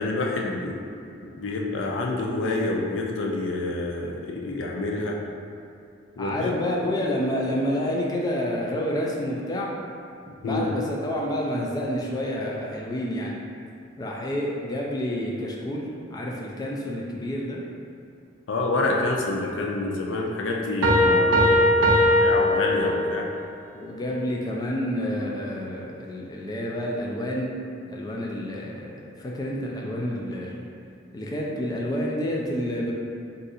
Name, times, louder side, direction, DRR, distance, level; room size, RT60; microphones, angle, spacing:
voice 1, 0.0-5.2 6.2-6.5 10.4-10.7 18.5-21.9 22.2-23.3, left 2 dB, 90° left, -1 dB, 0.4 m, -28 dB
voice 2, 6.2-9.7 10.4-13.4 14.0-17.6 18.8-19.0 21.1-21.6 22.0-22.3 23.7-27.5 27.9-30.6 31.1-32.9, equal, 20° left, -2 dB, 0.3 m, -29 dB
sound 1, 20.8-23.3, left 1 dB, 85° right, 0.4 m, -19 dB
2.6 x 2.5 x 4.0 m, 2.5 s
head